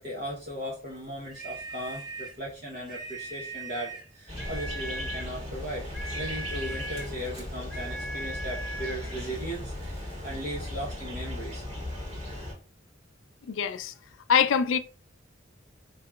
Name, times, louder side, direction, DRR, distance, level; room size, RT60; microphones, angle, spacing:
voice 1, 0.0-5.9 6.1-11.6, equal, 50° right, 0.8 m, -37 dB
sound 1, 1.3-2.4 2.8-4.1 4.4-5.3 5.9-7.2 7.7-9.0, right 2 dB, ahead, 1.1 m, -39 dB
sound 2, 4.3-12.5, left 1 dB, 30° right, 1.5 m, -37 dB
voice 2, 13.5-13.9 14.3-14.8, left 7 dB, 80° left, 0.4 m, -23 dB
4.7 x 2.8 x 2.2 m
head